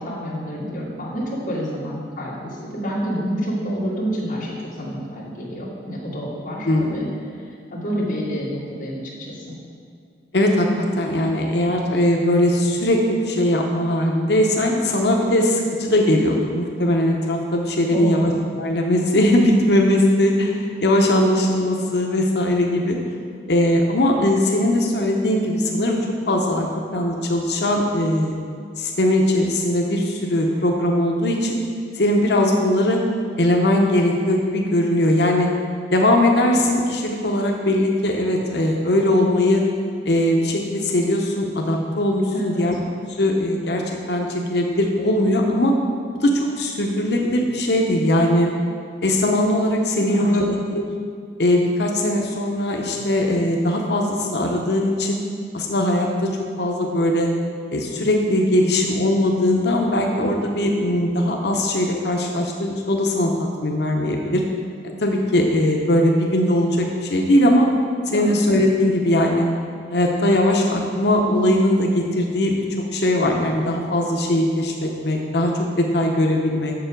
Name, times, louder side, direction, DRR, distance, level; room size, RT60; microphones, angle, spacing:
voice 1, 0.0-7.1 7.7-9.5 17.9-18.3 42.3-42.6 50.1-50.6 68.1-68.4, equal, 45° left, -8 dB, 1.9 m, -28 dB
voice 2, 6.6-7.1 10.3-23.0 23.5-26.0 26.3-28.4 28.8-31.6 31.9-33.0 33.4-35.5 35.9-39.6 40.1-42.8 43.2-45.7 46.1-48.5 49.0-50.8 51.4-55.2 55.5-56.3 56.6-57.3 57.7-63.3 63.6-64.4 64.8-67.7 68.1-69.5 69.9-72.6 72.9-75.5 75.8-76.7, left 1 dB, 65° left, 1 dB, 0.7 m, -20 dB
6.9 x 6.6 x 5.2 m, 2.3 s
head